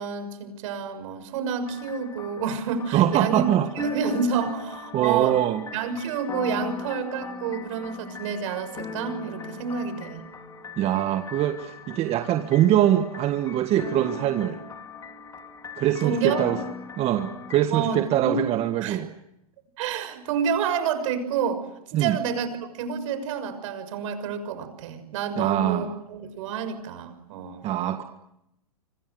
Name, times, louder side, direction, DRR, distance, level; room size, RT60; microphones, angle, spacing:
voice 1, 0.0-3.5 3.7-5.4 5.7-10.2 16.0-16.5 17.7-18.4 18.8-19.0 19.8-22.5 22.8-27.6, right 6 dB, 55° right, 9 dB, 6.6 m, -29 dB
sound 1, 1.7-17.6, left 4 dB, 20° left, 3.2 m, -39 dB
voice 2, 2.9-3.7 4.9-5.6 10.8-14.6 15.8-16.6 17.0-19.1 21.9-22.2 25.4-25.9 27.6-28.0, right 12 dB, 30° right, 7 dB, 1.7 m, -23 dB
29.0 x 25.5 x 8.0 m, 0.83 s
hypercardioid pair, 120°, 19 cm